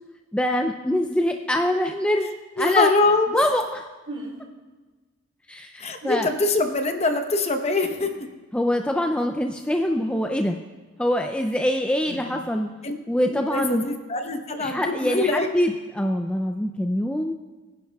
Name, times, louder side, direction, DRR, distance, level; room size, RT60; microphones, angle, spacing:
voice 1, 0.3-2.9 3.3-3.8 5.5-6.3 8.5-10.6 11.0-12.7 13.1-13.8 14.6-17.3, left 1 dB, 5° left, 4 dB, 0.3 m, -24 dB
voice 2, 2.6-3.5 5.8-8.1 12.8-12.9 13.3-15.5, left 3 dB, 30° left, 6 dB, 0.8 m, -23 dB
sound 1, 4.1-4.4 6.0-6.4 7.8-8.1 9.9-10.1 12.0-12.4 14.5-14.7, right 1 dB, 50° right, 2.6 m, -38 dB
23.0 x 10.0 x 2.3 m, 1.3 s
head